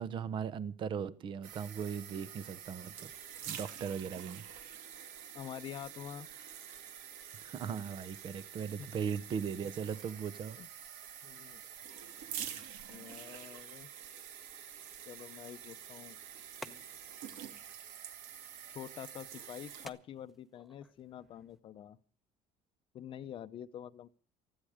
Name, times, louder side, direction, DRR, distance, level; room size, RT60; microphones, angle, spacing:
voice 1, 0.0-3.1 3.5-4.4 7.4-10.6, right 7 dB, 40° right, 0.9 m, -38 dB
sound 1, 1.4-19.9, right 9 dB, 80° right, 2.8 m, -47 dB
voice 2, 5.3-6.3 8.8-8.9 10.6-10.7 11.2-11.6 12.9-13.9 15.1-16.2 16.7-16.8 18.7-22.0 22.9-24.1, left 10 dB, 40° left, 0.8 m, -47 dB
sound 2, 15.5-21.6, equal, ahead, 1.0 m, -56 dB
19.5 x 14.5 x 5.0 m
cardioid pair, 160°, 13 cm